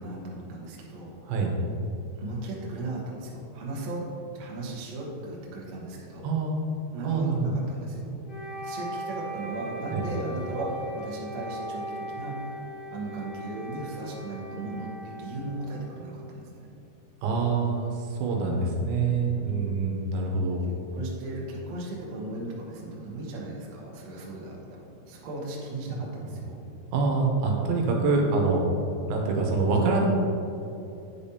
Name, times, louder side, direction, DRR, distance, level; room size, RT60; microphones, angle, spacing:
voice 1, 0.0-1.2 2.2-4.1 4.3-6.3 6.9-8.1 8.6-12.6 12.9-16.7 20.6-26.6, right 2 dB, 65° right, -3 dB, 1.8 m, -36 dB
voice 2, 6.2-6.6 7.0-7.5 9.9-10.1 17.2-20.7 25.9-26.0 26.9-28.6 29.1-30.1, right 4 dB, 85° right, 0 dB, 2.8 m, -25 dB
Wind instrument woodwind instrument, 8.3-16.3, right 1 dB, 50° left, 2.1 m, -39 dB
9.5 x 5.0 x 2.8 m, 2.8 s
omnidirectional pair, 4.3 m